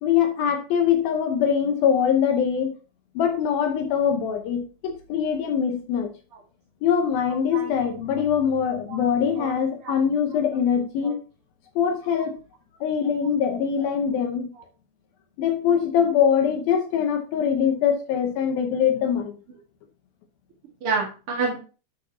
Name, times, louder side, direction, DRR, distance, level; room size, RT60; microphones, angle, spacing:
voice 1, 0.0-2.7 3.2-6.1 6.8-11.2 11.8-12.3 12.8-14.5 15.4-19.4, left 8 dB, 75° left, 2.3 m, -23 dB
voice 2, 20.8-21.6, right 4 dB, 55° right, 1.6 m, -28 dB
9.8 x 8.3 x 2.8 m
omnidirectional pair, 5.1 m